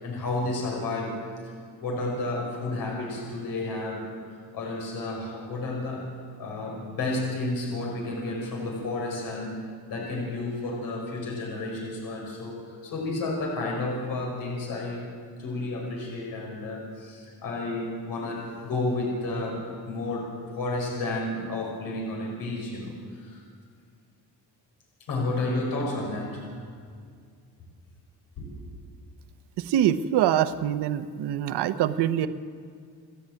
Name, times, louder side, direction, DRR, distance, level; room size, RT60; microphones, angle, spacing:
voice 1, 0.0-1.2 1.4-1.5 1.8-4.1 4.5-6.1 6.4-15.1 15.4-19.6 19.9-20.3 20.6-23.4 25.1-26.6 28.4-28.7, left 2 dB, 60° left, -1 dB, 5.7 m, -31 dB
voice 2, 29.7-32.3, right 11 dB, 85° right, 10 dB, 1.0 m, -24 dB
29.5 x 11.0 x 9.0 m, 2.2 s
cardioid pair, 170°, 39 cm